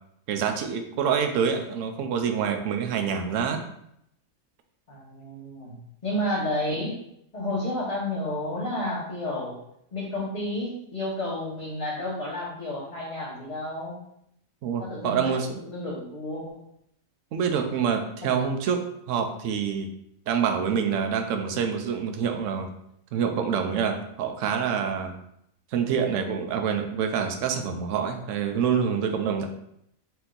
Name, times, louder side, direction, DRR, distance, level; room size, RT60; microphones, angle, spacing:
voice 1, 0.3-3.6 14.6-15.6 17.3-18.8 19.1-19.9 20.3-22.7 23.1-25.2 25.7-29.5, right 7 dB, 70° right, 5 dB, 0.9 m, -26 dB
voice 2, 4.9-7.0 7.3-9.6 9.9-14.0 14.8-15.4 15.7-16.6 18.2-18.3, left 1 dB, 30° left, -9 dB, 1.2 m, -31 dB
4.3 x 2.7 x 3.8 m, 0.75 s
omnidirectional pair, 1.4 m